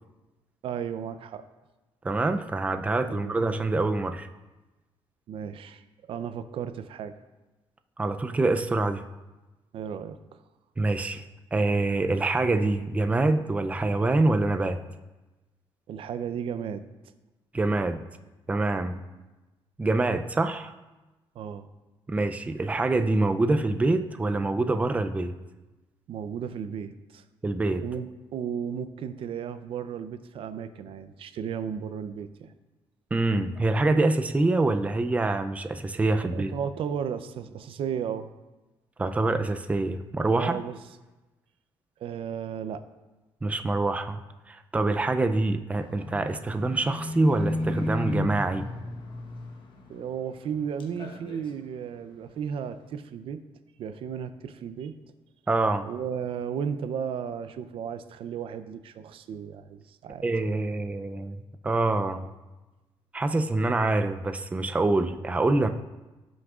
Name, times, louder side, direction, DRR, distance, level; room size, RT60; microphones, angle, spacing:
voice 1, 0.6-1.4 3.1-3.3 5.3-7.1 9.7-10.4 15.9-16.9 21.3-21.7 26.1-27.2 27.8-32.5 36.3-38.3 40.4-40.8 42.0-42.8 49.9-53.4 53.8-54.9 55.9-60.3, right 7 dB, 65° right, 11 dB, 0.5 m, -34 dB
voice 2, 2.0-4.3 8.0-9.0 10.8-11.2 11.5-14.8 17.5-18.0 18.5-19.0 19.8-20.7 22.1-25.3 27.4-27.8 33.1-36.5 39.0-40.6 43.4-44.2 44.5-48.7 55.5-55.9 60.2-62.3 63.1-65.7, right 2 dB, 15° right, 8 dB, 0.4 m, -25 dB
Livestock farm animals working animals, 45.8-50.5 50.8-51.5 52.0-52.1, left 1 dB, 55° left, 1.1 m, -34 dB
16.5 x 6.2 x 2.4 m, 1.1 s
cardioid pair, 135°, 10 cm